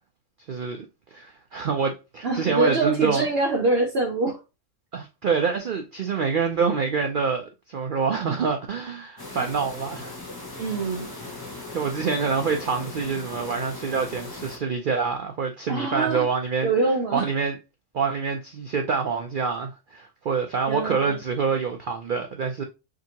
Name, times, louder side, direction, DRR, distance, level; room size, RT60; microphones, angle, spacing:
voice 1, 0.5-3.3 4.9-10.2 11.7-16.7 17.1-17.6 17.9-22.6, right 5 dB, 80° right, 0.4 m, -26 dB
voice 2, 2.2-4.4 10.6-11.1 15.7-16.2 16.6-17.2 20.7-21.2, right 3 dB, 55° right, 0.8 m, -24 dB
sound 1, 9.2-14.6, left 2 dB, 20° left, 0.7 m, -38 dB
4.9 x 2.7 x 2.8 m
omnidirectional pair, 1.5 m